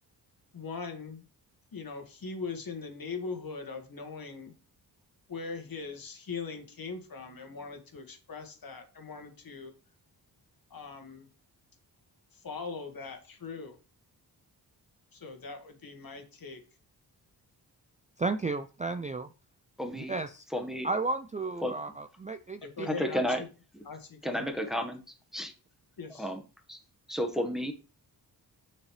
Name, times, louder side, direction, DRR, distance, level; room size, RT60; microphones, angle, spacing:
voice 1, 0.5-1.2 1.7-4.5 5.3-9.7 10.7-11.3 12.3-13.8 15.1-16.6 22.6-23.5 23.8-24.5 26.0-26.3, left 4 dB, 55° left, 5 dB, 1.9 m, -41 dB
voice 2, 18.2-19.3 19.9-20.4 20.8-22.9, right 3 dB, 20° right, 9 dB, 0.4 m, -33 dB
voice 3, 19.8-20.1 20.5-20.9 21.6-21.7 22.9-23.4 23.7-23.8 24.2-25.0 25.3-25.5 26.2-26.4 26.7-26.8 27.1-27.7, equal, ahead, 4 dB, 1.4 m, -31 dB
6.8 x 6.4 x 3.3 m, 0.34 s
cardioid pair, 80°, 41 cm